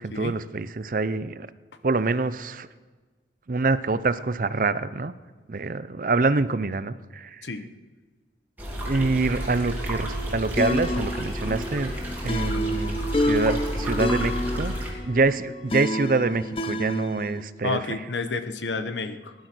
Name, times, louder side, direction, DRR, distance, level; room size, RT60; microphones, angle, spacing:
voice 1, 0.0-1.5 1.8-2.7 3.5-5.1 5.5-7.5 8.8-11.9 12.2-14.8 15.0-18.0, right 3 dB, 50° right, 14 dB, 0.6 m, -26 dB
sound 1, 8.6-14.9, equal, 10° right, 3.0 m, -31 dB
sound 2, 10.6-17.4, left 1 dB, 30° left, 0.6 m, -29 dB
voice 2, 17.6-19.3, left 3 dB, 85° left, 10 dB, 1.1 m, -30 dB
19.0 x 11.5 x 6.1 m, 1.4 s
head